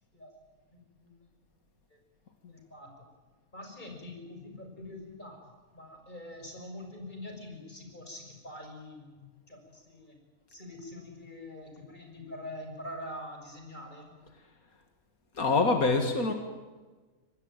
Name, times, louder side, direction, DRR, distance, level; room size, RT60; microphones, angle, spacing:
voice 1, 2.5-2.9 3.5-5.4 5.7-10.1 10.5-14.1, left 1 dB, 30° left, 3 dB, 6.3 m, -44 dB
voice 2, 15.4-16.3, left 3 dB, 80° left, 5 dB, 2.5 m, -25 dB
25.0 x 19.0 x 9.0 m, 1.3 s
omnidirectional pair, 1.5 m